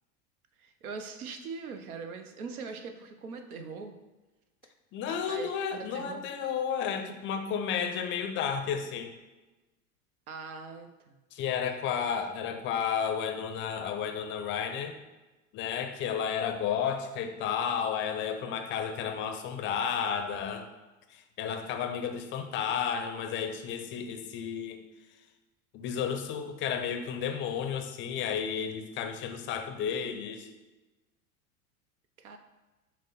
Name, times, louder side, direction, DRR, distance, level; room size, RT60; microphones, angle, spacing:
voice 1, 0.6-4.0 5.1-6.3 10.3-11.2 32.2-32.4, right 4 dB, 75° right, 6 dB, 0.7 m, -41 dB
voice 2, 4.9-9.1 11.3-15.0 15.5-20.7 21.1-24.8 25.7-30.5, left 7 dB, 30° left, 6 dB, 0.5 m, -32 dB
6.1 x 2.1 x 4.1 m, 1.1 s
hypercardioid pair, 85°, 43 cm